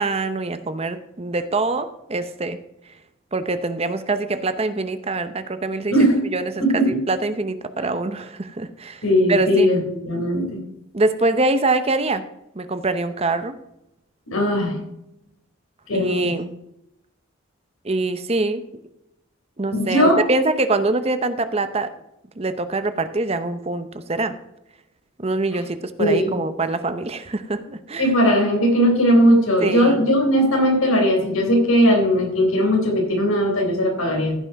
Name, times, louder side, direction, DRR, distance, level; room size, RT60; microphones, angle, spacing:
voice 1, 0.0-2.6 3.3-9.0 9.3-9.7 10.9-12.2 12.5-13.5 15.9-16.5 17.8-18.6 19.6-21.9 22.4-24.3 25.2-28.1 29.6-30.0, right 2 dB, 30° right, 11 dB, 0.7 m, -24 dB
voice 2, 6.6-7.0 9.0-10.6 14.3-14.8 15.9-16.3 19.7-20.2 26.0-26.4 28.0-34.4, equal, 90° left, 1 dB, 3.9 m, -18 dB
15.5 x 5.8 x 4.7 m, 0.83 s
head